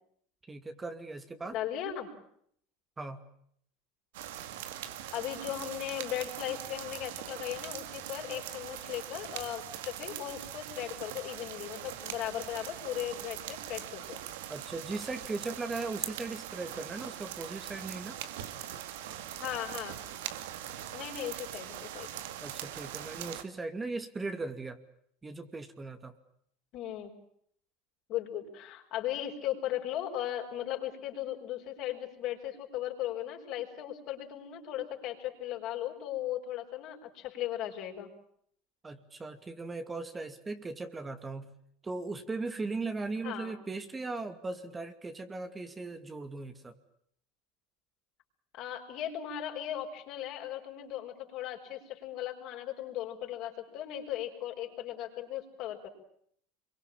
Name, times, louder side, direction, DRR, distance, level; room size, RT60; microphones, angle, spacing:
voice 1, 0.5-1.6 3.0-3.2 14.5-18.2 22.4-24.8 25.2-26.1 38.8-41.5 41.8-46.8, right 3 dB, 20° right, 8 dB, 2.5 m, -38 dB
voice 2, 1.5-2.1 5.1-14.2 19.4-20.0 20.9-22.1 26.7-27.1 28.1-38.1 43.2-43.5 48.5-55.9, left 12 dB, 55° left, 3 dB, 6.2 m, -37 dB
sound 1, 4.1-23.4, right 11 dB, 75° right, 2.2 m, -42 dB
26.5 x 23.5 x 8.8 m, 0.67 s
hypercardioid pair, 90°, 0 cm